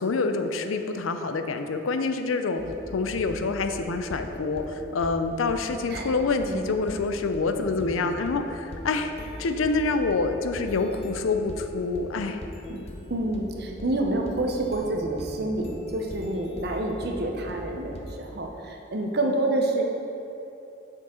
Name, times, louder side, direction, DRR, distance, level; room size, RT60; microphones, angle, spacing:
voice 1, 0.0-2.6 2.9-12.4, left 3 dB, 90° left, 7 dB, 0.5 m, -27 dB
sound 1, 2.6-18.2, left 1 dB, 30° left, 0.6 m, -40 dB
voice 2, 13.1-19.8, right 2 dB, 55° right, 2 dB, 0.7 m, -28 dB
6.4 x 6.1 x 4.3 m, 2.9 s
head